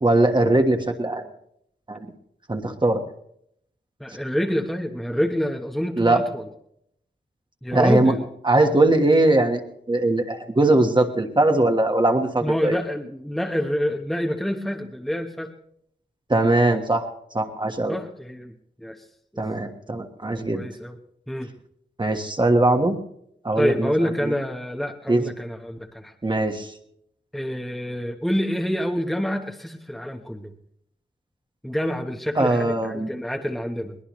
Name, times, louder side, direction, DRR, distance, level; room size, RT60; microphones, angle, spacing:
voice 1, 0.0-1.2 1.9-2.0 2.5-3.0 6.0-6.2 7.7-8.1 8.4-9.6 9.9-12.8 16.3-17.1 17.3-18.0 19.4-20.6 22.0-23.0 23.4-24.3 25.1-25.2 26.2-26.7 32.4-33.1, right 2 dB, 25° right, 4 dB, 1.4 m, -20 dB
voice 2, 4.0-6.4 7.6-8.2 12.4-15.5 17.9-18.5 18.8-19.0 20.5-21.0 21.3-21.5 23.6-26.1 27.3-30.5 31.6-34.0, equal, ahead, 2 dB, 1.1 m, -27 dB
21.5 x 19.5 x 3.1 m, 0.73 s
wide cardioid pair, 110°, 18 cm